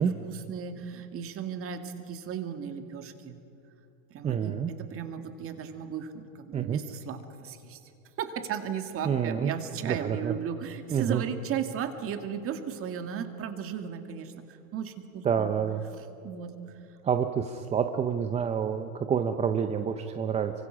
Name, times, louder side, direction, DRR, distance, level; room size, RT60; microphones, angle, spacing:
voice 1, 0.0-3.3 4.1-7.8 8.2-14.4 14.7-15.5 15.9-16.5, right 8 dB, 30° right, 7 dB, 2.0 m, -36 dB
voice 2, 4.2-4.7 6.5-6.8 9.0-9.5 9.9-10.3 10.9-11.2 15.2-15.8 17.0-20.5, right 7 dB, 15° right, 7 dB, 0.6 m, -28 dB
27.0 x 24.5 x 6.2 m, 2.8 s
supercardioid pair, 145°, 43 cm